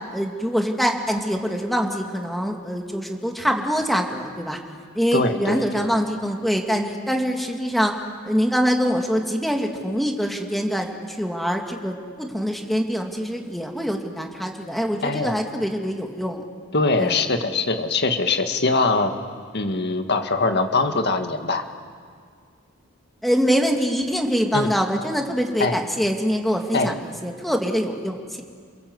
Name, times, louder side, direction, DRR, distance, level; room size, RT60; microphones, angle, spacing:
voice 1, 0.1-4.6 4.9-16.4 17.0-17.2 23.2-28.4, equal, ahead, 2 dB, 2.1 m, -24 dB
voice 2, 5.1-5.9 15.0-15.4 16.7-19.1 19.5-21.6 24.5-24.7 25.6-25.8 26.7-26.9, left 3 dB, 55° left, 6 dB, 2.0 m, -22 dB
29.0 x 22.5 x 7.9 m, 2.1 s
head